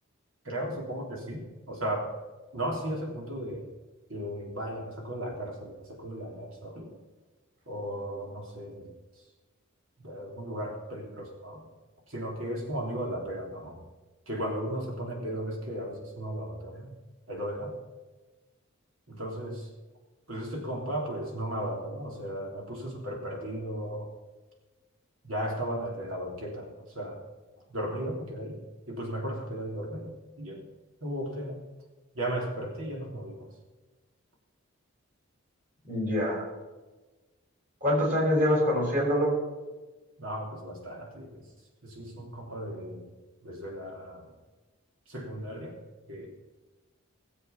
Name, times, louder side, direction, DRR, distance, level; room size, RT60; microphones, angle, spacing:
voice 1, 0.5-2.2 2.5-3.7 4.1-6.9 7.7-8.9 10.0-11.7 12.1-13.8 14.3-16.9 17.3-17.7 19.1-19.7 20.3-24.1 25.2-27.2 27.7-28.6 28.9-30.6 31.0-31.6 32.1-33.5 40.2-41.4 41.8-43.0 43.4-44.3 45.1-45.8 46.1-46.3, right 1 dB, 70° right, 0 dB, 3.4 m, -35 dB
voice 2, 35.9-36.5 37.8-39.3, equal, 40° right, -2 dB, 5.8 m, -25 dB
18.5 x 8.2 x 5.9 m, 1.2 s
head